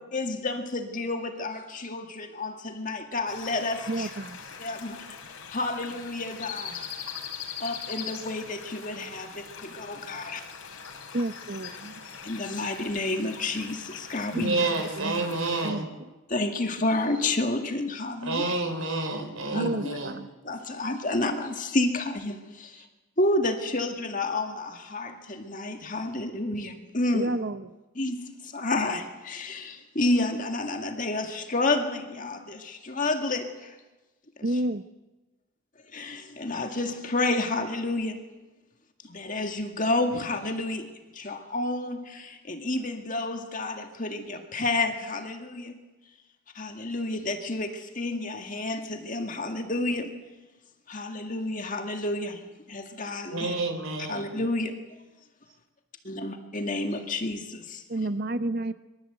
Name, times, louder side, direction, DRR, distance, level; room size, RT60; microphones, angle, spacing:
voice 1, 0.0-4.1 4.6-5.0 5.5-6.9 7.6-9.3 9.6-10.4 12.2-14.5 16.3-18.4 19.5-19.7 20.5-22.7 23.2-27.3 28.0-33.7 35.9-38.2 39.1-40.9 41.2-45.7 46.6-50.1 50.9-52.4 52.7-53.5 54.1-54.7 56.1-57.8, left 2 dB, 35° left, 5 dB, 2.0 m, -30 dB
sound 1, 3.3-15.7, left 7 dB, 85° left, 4.2 m, -41 dB
voice 2, 3.9-4.4 11.1-12.0 14.3-15.3 15.6-15.9 19.5-20.3 27.1-27.7 34.4-34.8 57.9-58.7, right 1 dB, 45° right, 11 dB, 0.8 m, -30 dB
voice 3, 14.3-15.9 18.2-20.2 53.3-54.2, right 3 dB, 75° right, 4 dB, 4.5 m, -29 dB
25.5 x 23.5 x 8.0 m, 1.1 s
head